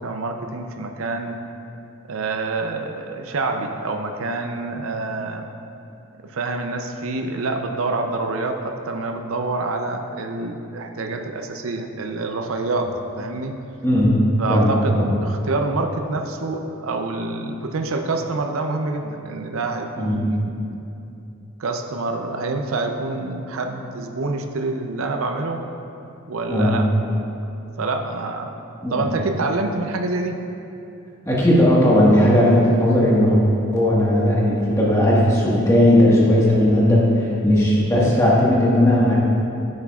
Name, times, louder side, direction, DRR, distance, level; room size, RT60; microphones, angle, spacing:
voice 1, 0.0-1.4 2.1-5.5 6.2-12.9 13.2-13.5 14.4-20.8 21.6-25.6 26.3-26.9 27.8-28.6 28.9-30.4, right 3 dB, 80° right, 4 dB, 0.6 m, -27 dB
voice 2, 13.8-14.2 14.5-15.1 20.0-20.1 26.5-26.7 28.8-29.1 31.2-33.4 33.7-39.1, left 1 dB, 15° left, -6 dB, 1.5 m, -17 dB
9.9 x 9.6 x 2.4 m, 2.8 s
head